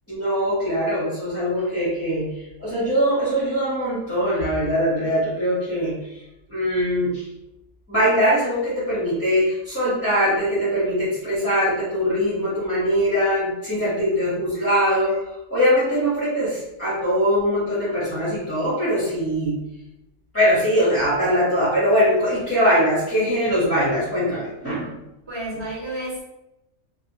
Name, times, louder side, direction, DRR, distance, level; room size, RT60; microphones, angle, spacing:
voice 1, 0.1-6.2 6.5-7.3 7.9-19.5 20.3-24.9, equal, 10° left, -11 dB, 0.9 m, -22 dB
voice 2, 25.3-26.2, right 1 dB, 20° right, -8 dB, 1.3 m, -31 dB
3.0 x 2.3 x 2.8 m, 0.91 s
omnidirectional pair, 1.3 m